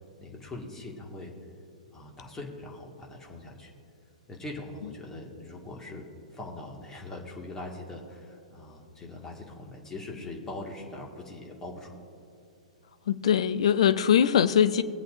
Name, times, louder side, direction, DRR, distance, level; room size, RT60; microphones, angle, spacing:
voice 1, 0.2-1.3 1.9-3.7 4.3-12.0, left 2 dB, 15° left, -1 dB, 1.9 m, -41 dB
voice 2, 13.1-14.8, left 8 dB, 55° left, 12 dB, 0.6 m, -22 dB
21.5 x 8.0 x 2.6 m, 2.7 s
figure-of-eight pair, 110°, 4 cm